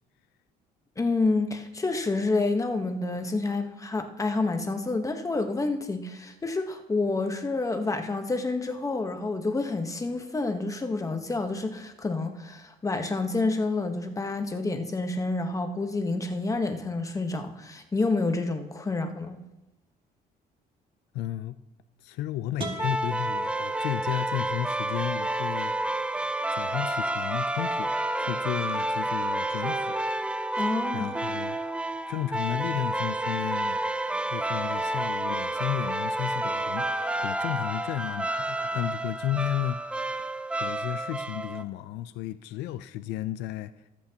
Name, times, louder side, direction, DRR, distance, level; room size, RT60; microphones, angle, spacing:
voice 1, 1.0-19.4 30.5-31.1, left 3 dB, 20° left, 1.1 m, -28 dB
voice 2, 21.1-21.6 22.0-25.7 26.5-30.0 30.9-31.6 32.1-33.8 34.3-36.9 37.2-39.8 40.2-40.3 40.6-43.9, left 13 dB, 85° left, 0.5 m, -33 dB
sound 1, 22.6-24.5, right 2 dB, 30° right, 2.4 m, -39 dB
sound 2, 22.8-41.6, right 1 dB, 5° right, 0.5 m, -30 dB
25.0 x 8.4 x 2.9 m
cardioid pair, 110°, 17 cm